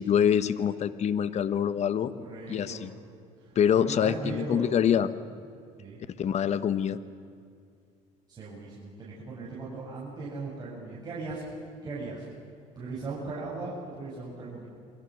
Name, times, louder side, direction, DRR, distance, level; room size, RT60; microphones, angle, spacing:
voice 1, 0.0-2.1 2.5-2.9 3.5-5.1 6.2-7.0, left 8 dB, 45° left, 14 dB, 1.2 m, -25 dB
voice 2, 2.1-2.9 3.4-4.9 5.8-6.0 8.3-11.4 11.8-12.3 12.8-14.7, right 3 dB, 25° right, -7 dB, 7.1 m, -38 dB
28.0 x 22.5 x 6.4 m, 2.3 s
supercardioid pair, 95°, 16 cm